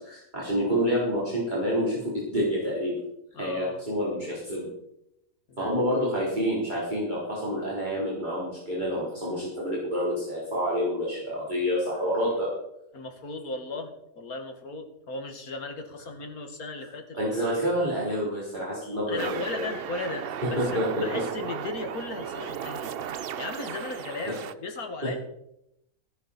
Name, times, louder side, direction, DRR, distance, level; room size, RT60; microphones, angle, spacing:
voice 1, 0.0-2.9 3.4-4.7 5.6-12.5 17.1-19.7 20.6-21.0, equal, 30° right, -8 dB, 4.2 m, -28 dB
voice 2, 3.3-3.8 5.5-5.7 12.9-17.3 18.8-22.9 23.4-25.2, left 3 dB, 90° left, 5 dB, 2.3 m, -37 dB
sound 1, 19.2-24.5, right 8 dB, 55° right, 0.6 m, -35 dB
17.0 x 10.5 x 4.4 m, 0.81 s
omnidirectional pair, 1.5 m